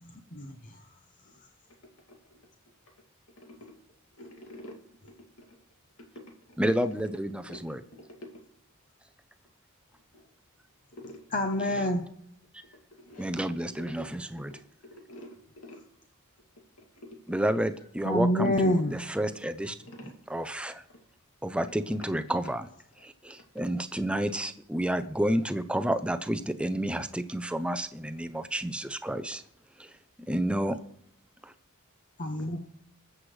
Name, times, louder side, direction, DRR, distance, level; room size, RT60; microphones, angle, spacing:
voice 1, 0.0-0.9 11.3-12.0 18.0-18.9 32.2-32.6, left 1 dB, 35° left, 5 dB, 0.8 m, -27 dB
voice 2, 2.1-2.4 3.4-3.7 4.2-4.8 5.0-5.6 6.0-6.3 7.5-7.6 7.9-8.4 10.1-10.3 10.9-11.2 11.6-11.9 12.9-13.3 14.0-14.1 14.5-15.8 16.8-17.2 19.8-20.4 20.9-21.0 22.0-22.1 23.2-23.3 32.4-32.5, left 1 dB, 75° left, 1 dB, 2.4 m, -48 dB
voice 3, 6.6-7.8 12.5-12.6 13.2-14.5 17.3-19.8 20.3-20.8 21.4-22.7 23.0-29.4 29.8-29.9 30.2-30.8 31.4-31.5, right 1 dB, 5° right, 10 dB, 0.5 m, -30 dB
21.0 x 7.8 x 3.2 m, 0.70 s
head